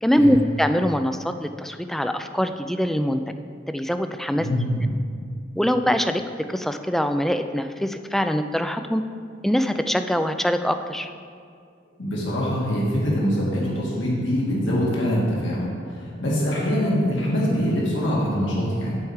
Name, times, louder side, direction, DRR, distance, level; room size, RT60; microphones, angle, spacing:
voice 1, 0.0-3.2 3.7-4.5 5.6-6.2 6.5-9.0 9.4-11.1, equal, ahead, 8 dB, 0.3 m, -23 dB
voice 2, 4.4-4.8 12.0-19.0, equal, 70° left, -6 dB, 2.2 m, -24 dB
7.8 x 4.6 x 7.2 m, 2.2 s
head